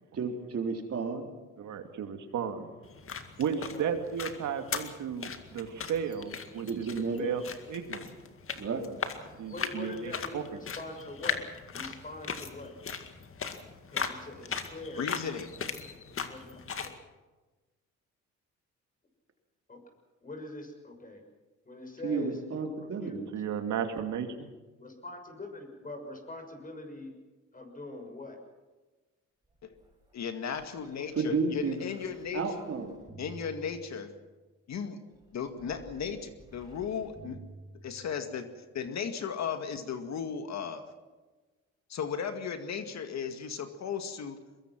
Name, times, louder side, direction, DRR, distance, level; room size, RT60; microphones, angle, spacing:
voice 1, 0.1-1.3 6.6-7.3 8.6-8.9 22.0-23.3 31.2-31.8 32.3-33.0, right 4 dB, 50° right, 2 dB, 4.0 m, -32 dB
voice 2, 1.6-2.7 3.4-6.9 7.2-8.1 9.4-10.4 23.3-24.5, right 7 dB, 75° right, 6 dB, 2.5 m, -34 dB
sound 1, 2.8-17.0, left 6 dB, 45° left, 2.1 m, -39 dB
voice 3, 9.5-11.4 11.7-12.7 13.9-15.0 15.9-16.9 19.7-19.8 20.2-21.2 21.6-22.7 23.0-23.2 24.8-27.1 27.5-28.4, left 2 dB, 25° left, 4 dB, 6.5 m, -43 dB
voice 4, 15.0-15.5 29.6-29.7 30.1-32.5 33.2-34.1 34.7-35.0 35.3-37.4 37.8-40.8 41.9-44.4, left 7 dB, 65° left, 7 dB, 2.1 m, -36 dB
sound 2, 29.4-34.4 35.1-38.4 39.2-39.3, right 2 dB, 15° right, 7.0 m, -53 dB
23.0 x 22.0 x 6.1 m, 1.3 s
cardioid pair, 90°, 30 cm